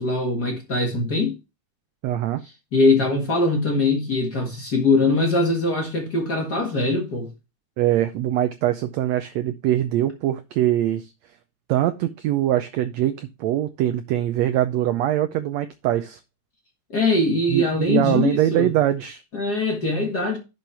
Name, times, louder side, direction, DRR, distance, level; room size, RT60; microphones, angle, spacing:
voice 1, 0.0-1.4 2.7-7.3 16.9-18.7 19.3-20.4, left 2 dB, 40° left, 1.7 m, -22 dB
voice 2, 2.0-2.4 7.8-11.1 11.7-16.2 17.5-19.2, right 13 dB, 85° right, 1.5 m, -23 dB
11.5 x 6.0 x 3.4 m
omnidirectional pair, 3.8 m